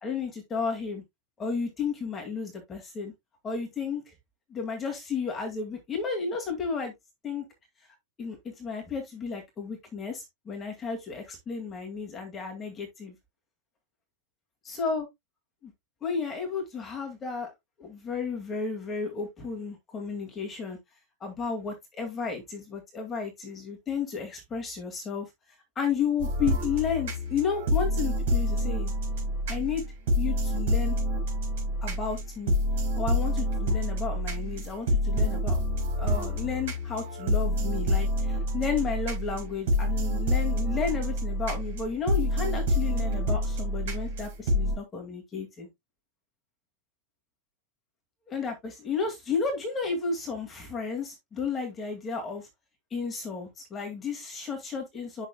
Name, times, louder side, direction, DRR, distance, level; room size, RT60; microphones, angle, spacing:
voice 1, 0.0-1.0 1.4-3.1 3.4-4.1 4.5-6.9 7.2-7.4 8.2-13.2 14.7-15.1 15.6-15.7 16.0-17.5 17.8-20.8 21.2-25.3 25.8-28.9 29.5-29.8 30.2-31.0 31.8-32.6 33.0-35.6 36.0-45.7 48.3-52.5 52.9-55.3, left 5 dB, 20° left, 2.1 m, -32 dB
sound 1, 26.2-44.8, left 1 dB, 55° right, 3.9 m, -27 dB
7.9 x 6.6 x 2.2 m
figure-of-eight pair, 90°, 0 cm